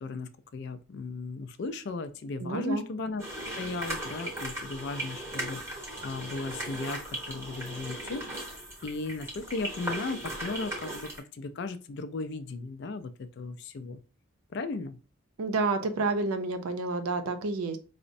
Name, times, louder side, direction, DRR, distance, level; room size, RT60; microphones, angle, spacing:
voice 1, 0.0-3.2 3.6-14.0 14.5-15.0, left 3 dB, 50° left, 0.3 m, -36 dB
voice 2, 2.4-2.8 15.4-17.8, right 3 dB, 90° right, 0.5 m, -29 dB
sound 1, 3.2-11.2, right 1 dB, 15° right, 0.8 m, -37 dB
4.8 x 2.1 x 2.6 m
head